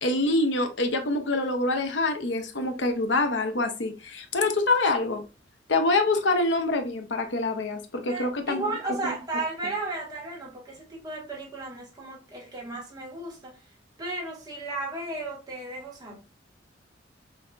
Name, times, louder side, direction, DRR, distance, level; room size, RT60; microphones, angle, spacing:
voice 1, 0.0-5.2 5.7-8.7 9.0-9.1, left 2 dB, 70° left, 0.8 m, -25 dB
voice 2, 8.1-13.5 14.0-16.2, right 2 dB, 20° right, 1.5 m, -34 dB
6.3 x 2.7 x 2.4 m
head